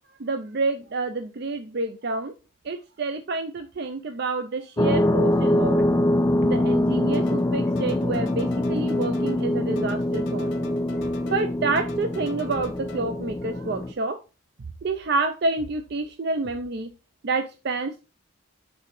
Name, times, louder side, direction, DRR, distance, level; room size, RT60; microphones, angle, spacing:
voice 1, 0.2-2.3 2.6-5.8 6.4-10.5 11.2-14.2 14.8-16.9 17.2-18.0, right 3 dB, 55° right, 8 dB, 0.5 m, -28 dB
sound 1, 4.8-13.9, left 1 dB, 15° left, 0.3 m, -24 dB
sound 2, 7.1-7.5 7.7-9.5 9.7-11.5 11.8-13.0, left 2 dB, 70° left, 1.0 m, -45 dB
6.2 x 3.7 x 4.8 m, 0.30 s
head